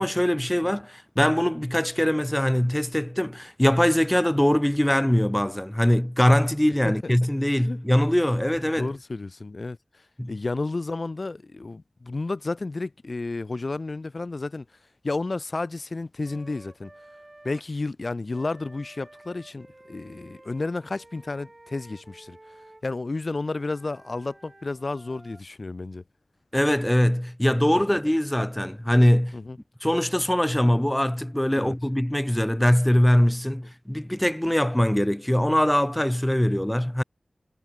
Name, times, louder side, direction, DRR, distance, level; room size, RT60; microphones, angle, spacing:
voice 1, 0.0-8.9 10.2-10.3 26.5-29.4 29.8-37.0, equal, 10° left, 1.2 m, -22 dB
voice 2, 8.8-9.8 10.3-14.6 15.0-16.9 17.4-22.4 22.8-26.0 29.3-29.6 31.5-31.8, left 3 dB, 55° left, 1.3 m, -32 dB
Wind instrument woodwind instrument, 16.2-17.6 18.3-22.8 23.4-25.4, right 1 dB, 30° right, 7.5 m, -51 dB
wide cardioid pair, 65°, 0 cm